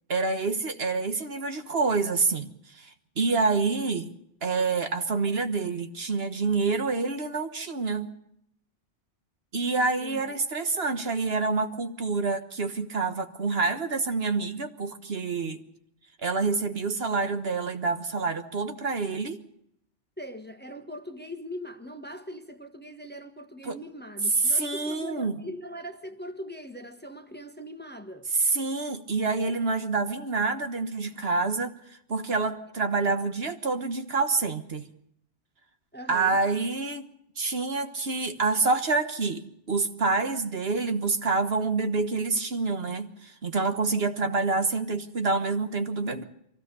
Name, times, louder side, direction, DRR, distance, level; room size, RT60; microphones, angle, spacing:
voice 1, 0.1-2.5 2.7-4.1 4.4-8.1 9.5-15.6 16.2-19.4 23.6-23.8 24.4-25.4 28.3-31.7 32.1-34.9 36.1-37.1 37.4-46.2, right 4 dB, 60° right, 1.6 m, -27 dB
voice 2, 9.8-10.4 20.2-28.3 35.9-36.4, equal, 10° left, 1.3 m, -41 dB
24.0 x 16.5 x 6.9 m
omnidirectional pair, 1.2 m